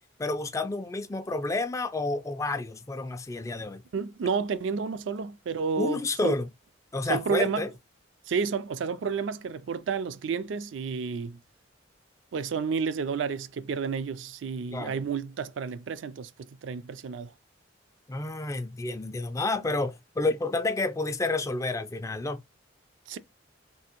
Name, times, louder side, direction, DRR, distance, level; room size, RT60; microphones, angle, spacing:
voice 1, 0.2-3.8 5.8-6.5 6.9-7.7 14.7-15.0 18.1-22.4, left 2 dB, 15° left, 0.3 m, -30 dB
voice 2, 3.9-6.4 7.1-7.7 8.3-11.4 12.3-17.3 23.1-23.2, right 5 dB, 70° right, 0.4 m, -31 dB
3.4 x 2.5 x 2.8 m
head